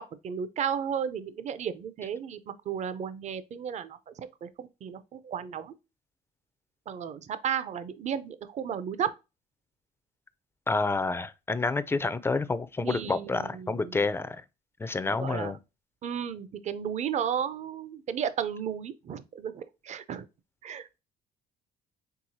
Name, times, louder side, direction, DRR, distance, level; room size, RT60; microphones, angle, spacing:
voice 1, 0.0-5.7 6.9-9.1 12.8-14.1 15.1-15.5 16.0-20.2 20.6-21.0, right 8 dB, 45° right, 0.6 m, -34 dB
voice 2, 10.7-14.4 14.8-15.6, left 3 dB, 15° left, 0.4 m, -29 dB
4.7 x 3.5 x 2.6 m
cardioid pair, 110°, 17 cm